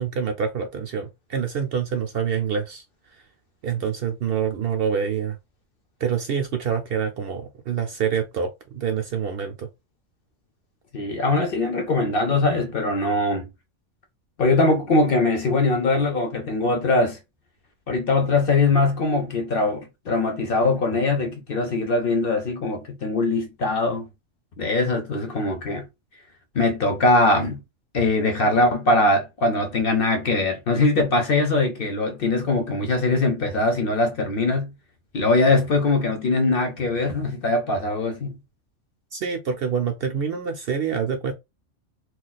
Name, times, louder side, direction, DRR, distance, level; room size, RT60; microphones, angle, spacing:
voice 1, 0.0-2.8 3.6-5.4 6.0-9.7 39.1-41.3, right 7 dB, 60° right, 0.6 m, -26 dB
voice 2, 10.9-13.5 14.4-17.2 17.9-24.1 24.6-25.9 26.5-27.6 27.9-34.7 35.1-38.4, left 2 dB, 55° left, 0.8 m, -22 dB
2.4 x 2.3 x 3.9 m
omnidirectional pair, 1.3 m